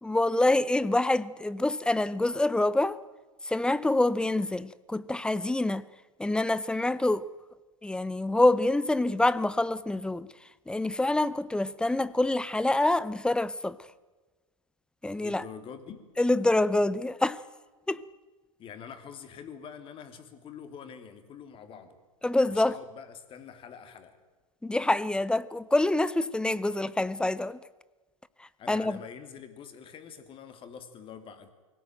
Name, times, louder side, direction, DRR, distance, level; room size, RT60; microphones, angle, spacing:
voice 1, 0.0-3.0 3.4-5.8 6.2-7.3 7.8-10.3 10.7-13.8 15.0-15.4 16.2-17.4 17.9-18.0 22.2-22.7 24.6-27.6 28.7-29.0, left 2 dB, 5° left, 0.7 m, -26 dB
voice 2, 15.2-16.1 18.6-22.0 22.5-24.2 28.6-31.5, left 7 dB, 30° left, 3.1 m, -45 dB
24.0 x 17.5 x 9.0 m
hypercardioid pair, 105°, 18 cm